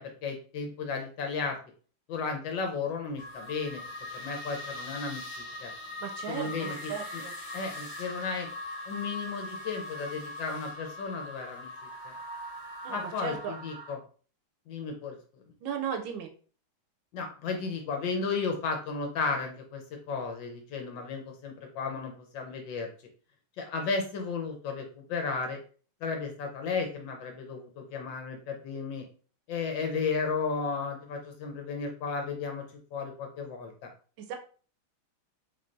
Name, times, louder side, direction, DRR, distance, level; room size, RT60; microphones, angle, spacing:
voice 1, 0.0-1.6 2.1-3.8 4.1-5.7 6.3-7.2 7.5-8.5 8.9-11.7 12.0-12.1 12.9-14.0 14.7-15.2 17.1-19.8 20.1-22.9 23.6-25.6 26.0-29.0 29.5-32.6 32.9-33.7, left 4 dB, 70° left, 3 dB, 1.3 m, -34 dB
sound 1, 3.2-13.9, left 1 dB, 40° left, 1.0 m, -41 dB
voice 2, 6.0-7.4 12.8-13.6 15.6-16.3 34.2-34.4, right 7 dB, 75° right, 4 dB, 1.3 m, -36 dB
3.7 x 3.2 x 2.5 m, 0.41 s
omnidirectional pair, 2.3 m